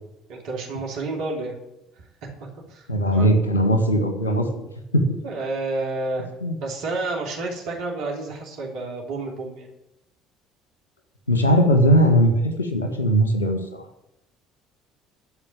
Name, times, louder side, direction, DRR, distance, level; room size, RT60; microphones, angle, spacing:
voice 1, 0.3-1.5 2.0-3.3 5.2-9.7, right 3 dB, 65° right, -1 dB, 3.2 m, -30 dB
voice 2, 2.9-4.7 4.9-5.2 6.4-6.5 11.3-13.8, equal, 90° left, 6 dB, 1.6 m, -19 dB
13.5 x 5.1 x 9.1 m, 0.89 s
hypercardioid pair, 55°, 0 cm